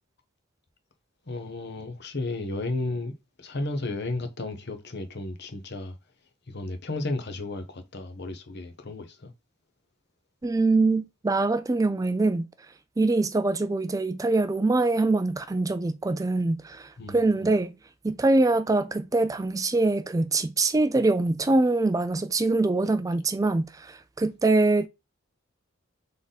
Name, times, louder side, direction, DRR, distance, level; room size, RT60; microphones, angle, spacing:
voice 1, 1.3-5.9 6.5-9.3 17.0-17.4, left 2 dB, 55° left, 0.9 m, -33 dB
voice 2, 10.4-12.5 13.0-17.8 18.0-24.9, right 2 dB, 15° right, 0.3 m, -24 dB
3.8 x 3.4 x 4.0 m
head